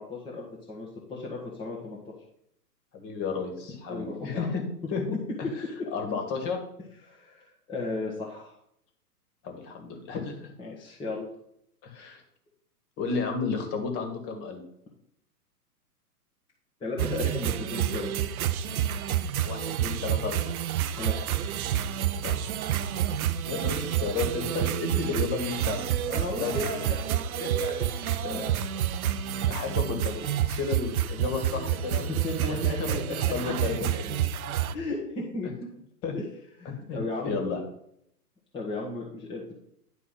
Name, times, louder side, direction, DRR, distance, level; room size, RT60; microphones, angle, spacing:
voice 1, 0.0-2.1 3.9-4.5 7.0-8.6 10.6-11.3 16.8-18.1 20.9-21.2 26.1-27.0 27.4-27.7 28.2-28.6 32.1-33.2 34.7-35.5 36.1-36.2 36.6-37.3 38.5-39.5, left 3 dB, 10° left, -4 dB, 1.4 m, -35 dB
voice 2, 2.9-4.6 4.9-5.2 5.6-5.7 5.9-6.6 9.4-10.5 11.8-12.2 13.0-14.6 19.4-20.5 22.2-22.6 23.4-25.9 26.4-26.9 27.4-27.5 29.5-30.1 30.5-32.1 32.5-32.9 33.2-34.2 36.0-36.1 36.7-37.0 37.2-37.6, left 5 dB, 30° left, 4 dB, 2.0 m, -32 dB
sound 1, 17.0-34.7, right 10 dB, 60° right, 0.8 m, -29 dB
10.5 x 4.5 x 5.8 m, 0.72 s
hypercardioid pair, 130°, 49 cm